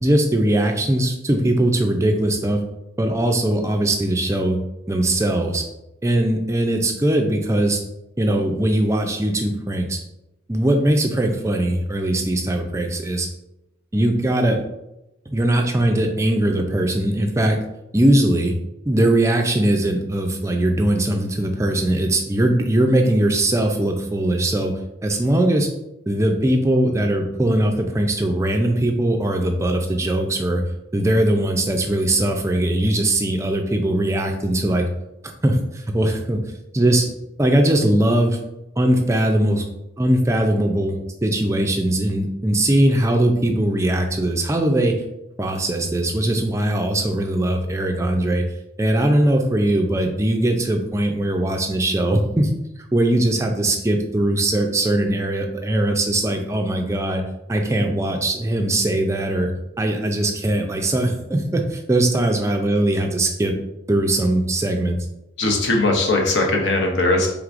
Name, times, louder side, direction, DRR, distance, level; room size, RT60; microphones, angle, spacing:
voice 1, 0.0-2.6 3.0-4.6 4.9-5.6 6.0-7.8 8.2-10.0 10.5-13.3 13.9-14.6 15.3-17.6 17.9-18.5 18.8-25.7 26.1-30.6 30.9-34.9 35.4-36.4 36.7-37.1 37.4-38.4 38.8-39.7 40.0-41.0 41.2-45.0 45.4-48.4 48.8-52.5 52.9-57.2 57.5-59.5 59.8-63.5 63.9-65.0, right 1 dB, 15° right, 3 dB, 0.4 m, -20 dB
voice 2, 65.4-67.3, left 2 dB, 60° left, 1 dB, 0.8 m, -19 dB
4.6 x 3.5 x 2.5 m, 0.91 s
head